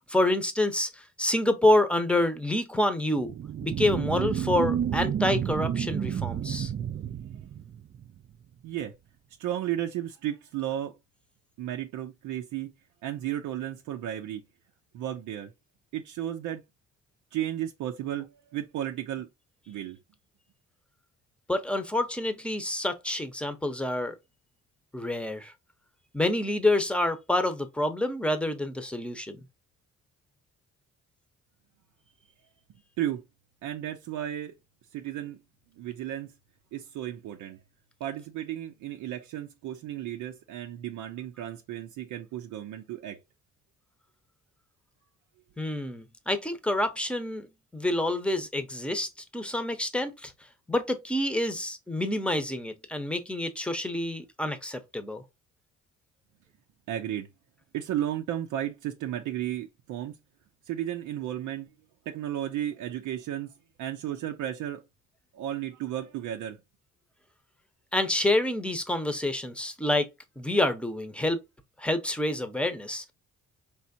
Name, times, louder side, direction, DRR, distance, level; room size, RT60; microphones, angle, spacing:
voice 1, 0.1-3.3 3.6-6.7 21.5-24.2 24.9-25.5 26.1-29.4 45.6-50.3 50.7-55.2 67.9-70.1 70.4-71.4 71.8-73.1, left 1 dB, 5° left, 0.8 m, -27 dB
sound 1, 3.2-8.2, right 9 dB, 35° right, 0.4 m, -30 dB
voice 2, 9.4-10.9 11.6-12.7 13.0-14.4 14.9-15.5 15.9-16.6 17.3-19.3 19.7-20.0 33.0-33.2 33.6-34.5 34.9-35.4 35.8-36.3 36.7-37.6 38.0-43.2 56.9-57.3 57.7-60.1 60.7-61.7 62.1-63.5 63.8-64.8 65.3-66.6, right 12 dB, 80° right, 0.6 m, -33 dB
4.4 x 3.5 x 2.7 m
cardioid pair, 90°, 30 cm